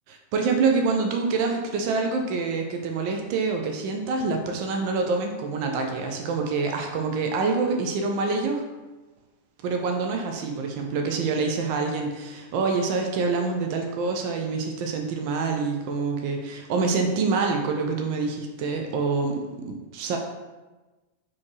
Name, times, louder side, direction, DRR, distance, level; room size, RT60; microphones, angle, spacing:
voice 1, 0.1-8.6 9.6-20.2, right 4 dB, 45° right, 3 dB, 0.5 m, -26 dB
4.2 x 2.9 x 3.0 m, 1.2 s
figure-of-eight pair, 90°, 0 cm